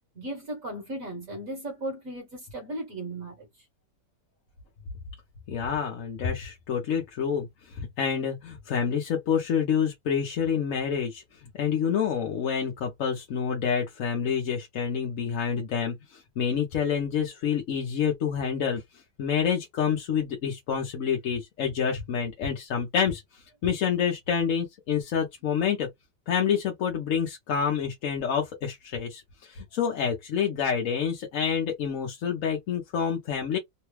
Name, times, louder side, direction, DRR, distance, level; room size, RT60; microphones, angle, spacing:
voice 1, 0.1-3.5, right 1 dB, 55° right, 1.4 m, -36 dB
voice 2, 5.5-11.2 11.5-18.8 19.2-25.9 26.3-33.6, left 7 dB, 60° left, 1.0 m, -28 dB
3.3 x 2.2 x 3.1 m
omnidirectional pair, 1.9 m